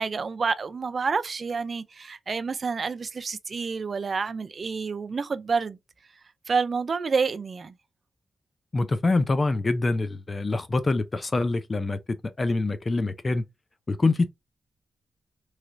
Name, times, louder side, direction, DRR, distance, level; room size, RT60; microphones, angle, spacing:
voice 1, 0.0-5.8 6.5-7.7, right 5 dB, 50° right, 0.4 m, -28 dB
voice 2, 8.7-12.0 12.4-13.4 13.9-14.3, left 3 dB, 35° left, 0.5 m, -25 dB
3.2 x 2.8 x 2.6 m
cardioid pair, 85°, 0 cm